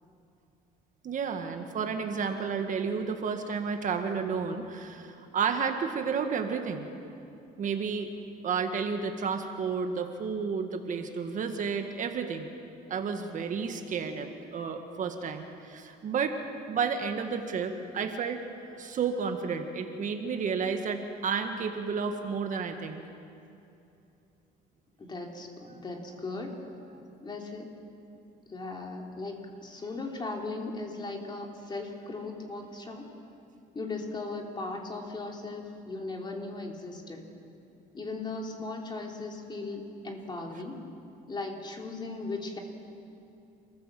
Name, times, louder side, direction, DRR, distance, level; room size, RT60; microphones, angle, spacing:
voice 1, 1.0-6.9 7.6-8.1 8.4-12.5 12.9-16.4 16.7-23.0, right 6 dB, 50° right, 5 dB, 1.7 m, -31 dB
voice 2, 25.0-26.6 27.2-27.7 28.5-33.1 33.7-37.3 37.9-40.8 41.3-42.6, left 3 dB, 25° left, 1 dB, 3.3 m, -37 dB
28.5 x 15.0 x 7.6 m, 2.7 s
cardioid pair, 110°, 17 cm